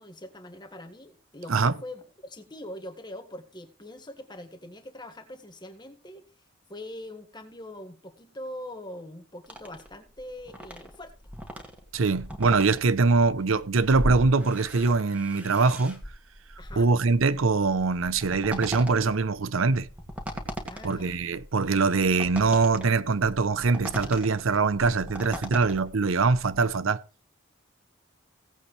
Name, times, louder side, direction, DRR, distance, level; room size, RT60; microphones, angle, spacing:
voice 1, 0.0-6.3 6.7-11.1 16.6-16.9 20.7-21.2, left 1 dB, 20° left, 1.6 m, -42 dB
sound 1, 9.4-26.7, equal, 5° right, 2.3 m, -39 dB
voice 2, 11.9-16.0 16.8-19.9 20.8-27.0, right 4 dB, 70° right, 0.7 m, -23 dB
17.5 x 8.5 x 3.2 m
head